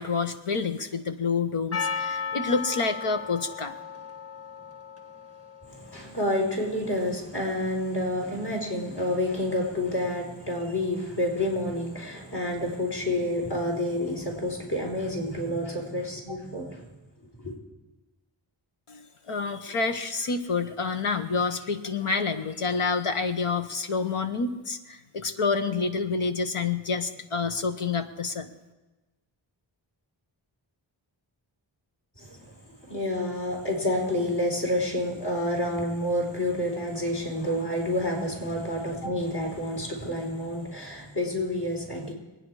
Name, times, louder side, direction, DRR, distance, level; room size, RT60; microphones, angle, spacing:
voice 1, 0.0-3.7 18.9-28.5, left 4 dB, 90° left, 1.2 m, -28 dB
Percussion, 1.7-6.7, left 6 dB, 30° left, 2.1 m, -35 dB
voice 2, 5.7-16.8 17.4-17.5 32.2-32.5 32.8-42.1, left 1 dB, 50° left, 4.8 m, -29 dB
23.5 x 9.7 x 4.9 m
cardioid pair, 45°, 49 cm